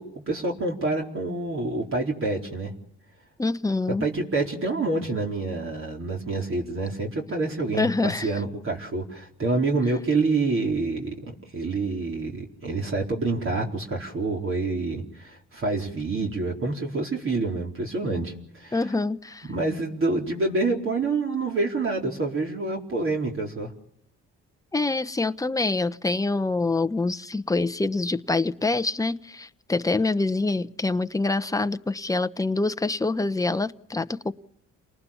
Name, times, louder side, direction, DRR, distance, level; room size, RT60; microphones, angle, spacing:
voice 1, 0.0-2.7 4.0-11.1 11.5-18.9 19.5-23.7, right 3 dB, 45° right, 4.5 m, -27 dB
voice 2, 3.4-4.1 7.8-8.3 18.7-19.5 24.7-34.3, left 3 dB, 10° left, 1.0 m, -25 dB
29.0 x 19.5 x 7.2 m
cardioid pair, 90°, 30 cm